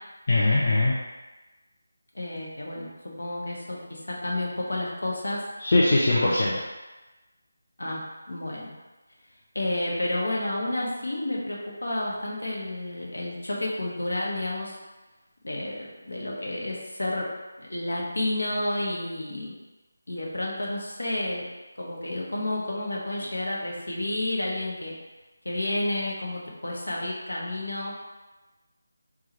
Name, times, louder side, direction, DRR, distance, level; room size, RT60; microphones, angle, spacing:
voice 1, 0.3-0.9 5.6-6.5, left 2 dB, 40° left, -6 dB, 0.5 m, -21 dB
voice 2, 2.1-5.4 6.2-6.4 7.8-8.0 8.3-8.7 9.5-14.8 15.4-17.3 17.6-19.5 20.1-21.4 21.8-24.9 25.4-27.9, left 1 dB, 65° left, -3 dB, 1.0 m, -30 dB
4.5 x 2.4 x 3.0 m, 1.1 s
figure-of-eight pair, 160°, 0 cm